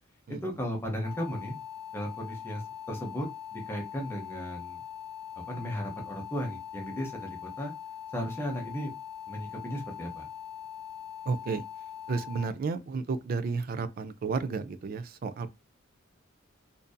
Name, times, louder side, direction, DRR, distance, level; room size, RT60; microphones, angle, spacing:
voice 1, 0.3-1.5 1.9-2.6 2.9-4.8 5.5-7.7 8.1-8.9 9.3-10.3, equal, 10° left, 0.6 m, -35 dB
sound 1, 1.0-12.5, left 9 dB, 55° left, 0.6 m, -42 dB
voice 2, 11.3-11.6 12.1-15.5, right 4 dB, 45° right, 0.3 m, -32 dB
2.5 x 2.5 x 2.2 m
head